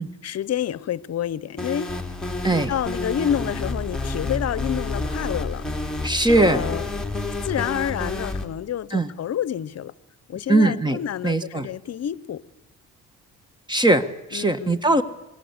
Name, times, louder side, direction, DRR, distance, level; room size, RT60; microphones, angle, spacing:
voice 1, 0.0-2.1 2.5-5.7 6.4-6.9 7.4-9.9 10.3-12.4 14.3-14.8, left 10 dB, 55° left, 0.9 m, -28 dB
sound 1, 1.6-8.4, left 2 dB, ahead, 2.9 m, -29 dB
voice 2, 6.0-6.6 8.9-9.1 10.5-11.0 11.2-11.7 13.7-15.0, right 2 dB, 15° right, 1.4 m, -20 dB
26.0 x 21.5 x 8.1 m
cardioid pair, 90°, 30 cm